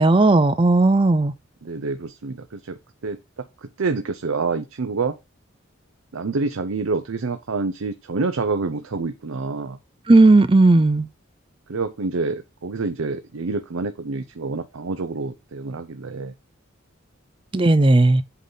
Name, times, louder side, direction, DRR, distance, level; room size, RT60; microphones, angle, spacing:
voice 1, 0.0-1.3 10.1-11.1 17.5-18.2, right 2 dB, 25° right, 0.5 m, -15 dB
voice 2, 1.6-2.8 3.0-5.2 6.1-9.8 11.7-16.3, right 4 dB, 90° right, 0.6 m, -27 dB
8.3 x 3.9 x 3.9 m
head